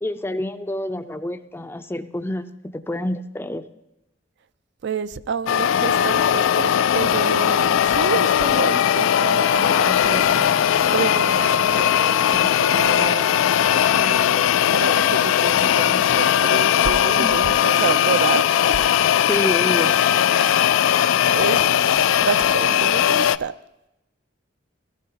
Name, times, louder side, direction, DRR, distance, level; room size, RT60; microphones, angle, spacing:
voice 1, 0.0-2.5 2.7-3.6 17.2-17.5 19.3-20.0, left 1 dB, 10° left, 10 dB, 0.4 m, -28 dB
voice 2, 4.8-13.5 13.9-18.9 20.3-20.7 21.3-21.9 22.1-23.5, right 5 dB, 65° right, 13 dB, 0.4 m, -29 dB
sound 1, 5.5-23.4, left 9 dB, 85° left, 0.3 m, -19 dB
sound 2, 10.2-17.7, left 1 dB, 85° right, 2.0 m, -46 dB
17.0 x 13.5 x 2.8 m, 0.89 s
head